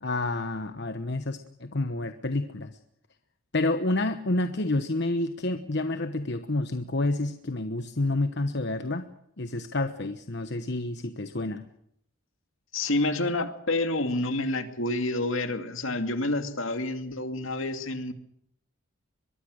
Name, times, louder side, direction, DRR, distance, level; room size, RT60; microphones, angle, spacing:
voice 1, 0.0-2.7 3.5-9.1 9.4-11.6, left 2 dB, 55° left, 9 dB, 1.1 m, -29 dB
voice 2, 12.7-18.1, left 2 dB, 70° left, 8 dB, 2.4 m, -28 dB
23.5 x 22.5 x 6.5 m, 0.73 s
head